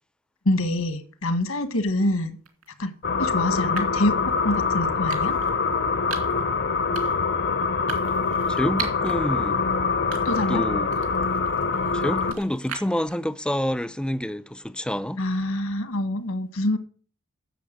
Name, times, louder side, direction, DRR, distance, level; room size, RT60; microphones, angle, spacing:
voice 1, 0.4-2.4 2.8-2.9 3.2-4.2 4.4-5.3 10.2-10.6 15.2-16.8, left 1 dB, 75° left, 1.6 m, -25 dB
sound 1, 2.5-2.7 3.8-4.1 5.1-5.5 6.1-6.4 6.9-7.3 7.9-9.2 9.6-9.7 10.1-10.6 10.9-13.1, right 7 dB, 75° right, 2.6 m, -37 dB
sound 2, 3.0-12.3, left 4 dB, 50° left, 0.7 m, -24 dB
voice 2, 8.5-9.6 10.5-11.0 11.9-15.2, equal, 5° left, 0.5 m, -28 dB
10.0 x 7.0 x 8.0 m
head